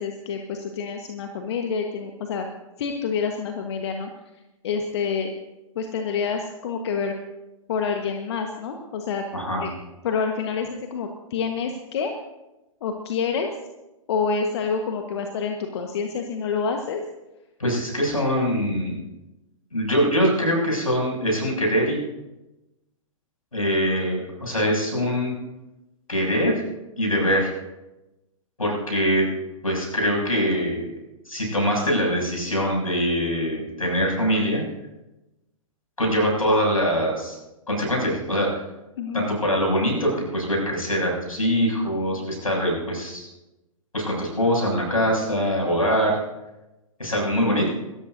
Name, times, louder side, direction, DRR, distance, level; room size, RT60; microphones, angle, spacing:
voice 1, 0.0-2.5 2.8-4.1 4.6-5.3 5.7-7.1 7.7-9.2 9.6-9.7 10.0-12.1 12.8-13.5 14.1-17.0 39.0-39.3, left 5 dB, 50° left, 4 dB, 1.4 m, -27 dB
voice 2, 9.3-9.6 17.6-19.0 19.7-22.0 23.5-25.3 26.1-26.7 27.0-27.5 28.6-29.3 29.6-30.9 31.3-34.6 36.0-37.4 37.7-38.5 39.1-43.3 43.9-46.2 47.0-47.7, equal, 80° left, -1 dB, 7.1 m, -23 dB
27.0 x 13.5 x 2.7 m, 0.98 s
figure-of-eight pair, 110°, 18 cm